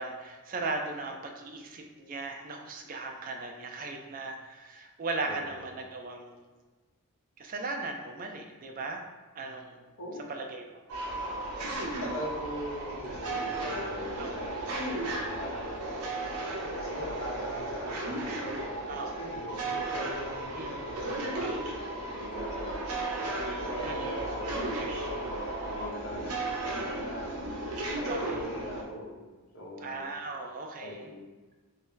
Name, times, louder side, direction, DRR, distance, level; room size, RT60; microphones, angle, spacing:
voice 1, 0.0-6.5 7.4-9.0 9.3-9.9 10.3-10.8 14.2-14.5 18.9-19.3 20.5-20.8 22.7-22.9 23.8-24.2 24.6-24.9 28.1-28.4 29.8-31.1, right 3 dB, 40° right, 3 dB, 0.3 m, -38 dB
voice 2, 5.2-5.6 10.0-10.2 12.0-15.9 16.7-23.1 23.5-27.3 27.9-29.3 29.5-30.0 30.3-30.4 30.8-31.2, left 1 dB, 60° left, -4 dB, 0.9 m, -41 dB
sound 1, 10.9-28.8, right 2 dB, 85° right, 0.7 m, -34 dB
3.0 x 2.7 x 3.7 m, 1.3 s
head